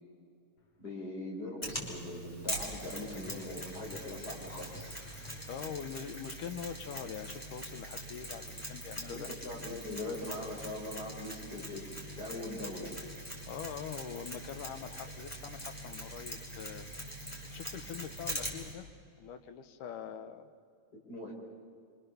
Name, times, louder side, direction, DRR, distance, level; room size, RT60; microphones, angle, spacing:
sound 1, 0.6-1.1 3.2-5.9, left 3 dB, 50° left, 2.8 m, -55 dB
voice 1, 0.8-5.0 9.1-11.9 12.2-13.0 21.1-21.3, left 2 dB, 30° left, -1 dB, 5.0 m, -41 dB
Mechanisms, 1.6-18.7, right 1 dB, 10° left, 4.4 m, -43 dB
voice 2, 5.5-9.3 13.5-16.9 17.5-18.9 19.2-20.5, left 8 dB, 80° left, 8 dB, 2.6 m, -43 dB
27.0 x 25.5 x 7.1 m, 2.3 s
omnidirectional pair, 3.7 m